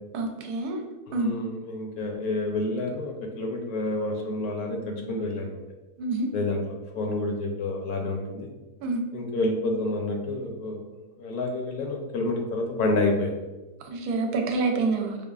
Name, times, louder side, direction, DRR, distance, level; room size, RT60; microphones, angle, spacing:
voice 1, 0.1-0.8 1.1-1.3 6.0-6.3 8.8-9.0 13.8-15.2, right 3 dB, 75° right, 3 dB, 1.1 m, -27 dB
voice 2, 1.1-5.5 6.3-8.5 9.1-10.8 11.2-13.4, left 2 dB, 70° left, 2 dB, 1.0 m, -29 dB
4.9 x 2.3 x 2.3 m, 1.1 s
omnidirectional pair, 1.7 m